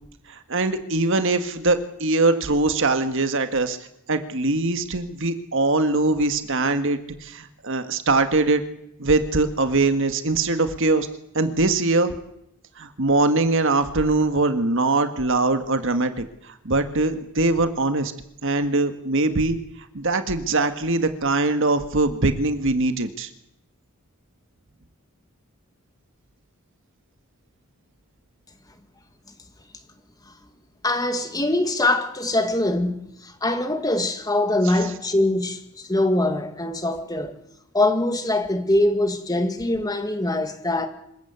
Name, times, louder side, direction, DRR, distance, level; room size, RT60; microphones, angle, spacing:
voice 1, 0.3-3.8 4.1-8.6 9.0-11.1 11.3-12.1 12.8-18.1 18.4-19.6 19.9-23.3, right 2 dB, 60° right, 1.7 m, -22 dB
voice 2, 30.8-37.4 37.7-40.9, left 1 dB, 15° left, 2.1 m, -23 dB
26.5 x 15.5 x 8.2 m
head